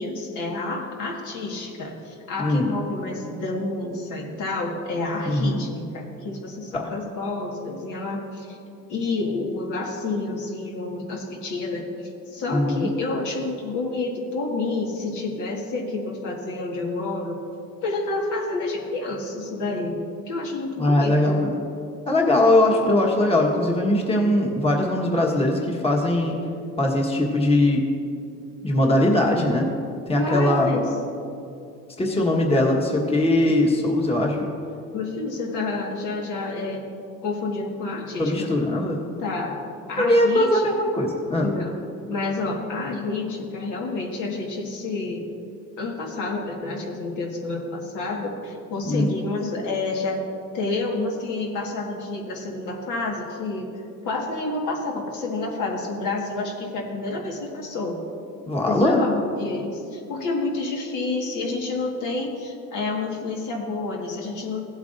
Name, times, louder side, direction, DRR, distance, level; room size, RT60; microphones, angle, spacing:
voice 1, 0.0-8.6 8.9-11.9 12.3-17.5 17.8-20.0 20.3-21.4 30.1-30.9 34.9-36.9 37.2-38.5 39.2-39.6 39.9-40.7 41.4-41.7 42.1-45.3 45.8-50.2 50.5-53.7 54.0-58.0 58.7-64.7, left 3 dB, 70° left, 0 dB, 1.7 m, -29 dB
voice 2, 5.2-5.6 6.7-6.9 12.5-12.9 20.8-21.6 22.1-26.3 26.8-27.8 28.6-29.7 30.1-30.8 32.0-34.4 38.2-39.0 40.0-41.5 48.8-49.1 58.5-59.0, left 1 dB, 20° left, -1 dB, 1.4 m, -20 dB
16.0 x 8.1 x 2.6 m, 2.5 s
cardioid pair, 100°, 32 cm